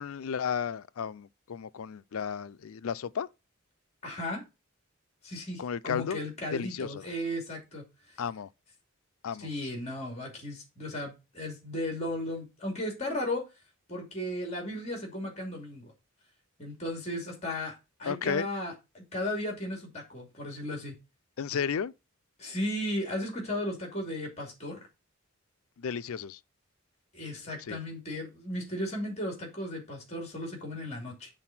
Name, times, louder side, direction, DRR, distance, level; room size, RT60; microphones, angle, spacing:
voice 1, 0.0-3.3 5.6-6.2 6.5-7.0 8.2-8.5 9.2-9.5 18.1-18.5 21.4-21.9 25.8-26.4 27.7-27.8, left 7 dB, 75° left, 0.4 m, -33 dB
voice 2, 4.0-4.4 5.2-7.8 9.4-13.4 13.9-15.9 16.6-21.0 22.4-24.8 27.1-31.3, left 1 dB, 30° left, 2.7 m, -35 dB
7.7 x 4.0 x 6.0 m
head